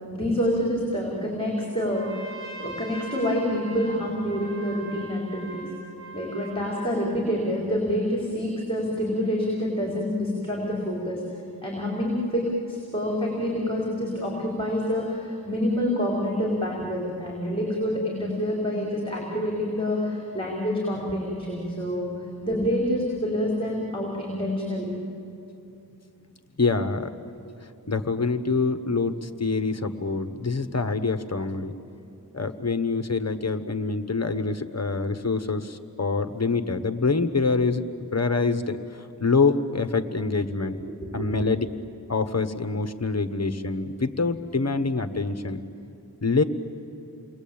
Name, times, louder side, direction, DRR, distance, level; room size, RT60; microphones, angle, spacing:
voice 1, 0.1-5.7 6.1-11.2 11.6-12.4 12.7-22.1 22.4-24.9 40.9-41.1, equal, 15° left, -2 dB, 4.9 m, -27 dB
Trumpet, 1.8-6.8, right 2 dB, 35° right, 6.2 m, -41 dB
voice 2, 26.6-27.1 27.9-31.7 32.3-37.8 38.1-40.8 41.1-41.7 42.1-45.6 46.2-46.4, left 4 dB, 40° left, 10 dB, 1.3 m, -25 dB
29.5 x 22.0 x 8.8 m, 2.8 s
wide cardioid pair, 75°, 38 cm